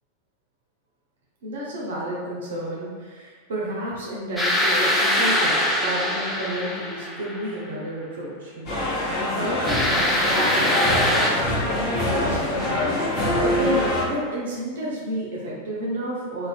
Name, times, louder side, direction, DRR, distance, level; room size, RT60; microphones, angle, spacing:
voice 1, 1.4-11.2 11.6-12.6 13.1-16.5, equal, 60° right, -5 dB, 0.5 m, -31 dB
sound 1, 4.4-7.6 9.6-11.3, left 1 dB, 5° left, 0.4 m, -23 dB
sound 2, 8.7-14.0, left 1 dB, 35° left, 0.7 m, -24 dB
2.4 x 2.1 x 2.4 m, 1.5 s
figure-of-eight pair, 90°, 0 cm